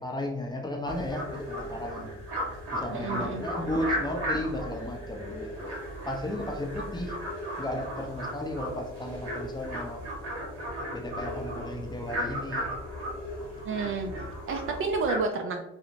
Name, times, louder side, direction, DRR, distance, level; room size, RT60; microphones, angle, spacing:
voice 1, 0.0-2.2 2.7-5.8 6.1-7.2 7.6-10.0 10.9-12.7, left 1 dB, 15° left, 2 dB, 0.5 m, -34 dB
sound 1, 0.9-15.2, equal, 65° right, 0.8 m, -36 dB
sound 2, 1.1-14.7, left 1 dB, 85° left, 0.5 m, -44 dB
voice 2, 2.9-3.4 13.6-14.1 14.5-15.6, right 4 dB, 40° right, 4 dB, 0.4 m, -30 dB
2.8 x 2.1 x 2.6 m, 0.90 s
figure-of-eight pair, 40°, 33 cm